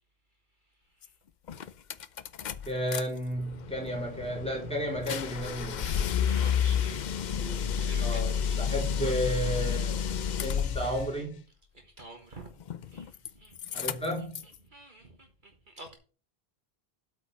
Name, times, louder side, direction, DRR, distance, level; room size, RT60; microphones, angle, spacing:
sound 1, 1.0-1.1 1.5-3.0 3.4-11.1 12.6-13.3 13.6-14.5, left 8 dB, 55° left, 0.6 m, -31 dB
voice 1, 2.7-6.3 7.3-7.7 8.0-10.0 10.4-11.4 13.7-14.4, equal, 5° left, 3.8 m, -33 dB
voice 2, 5.8-7.4 7.7-9.4 11.7-12.5 12.8-13.8 14.7-15.9, right 2 dB, 50° right, 1.5 m, -49 dB
8.4 x 5.4 x 6.7 m
omnidirectional pair, 1.0 m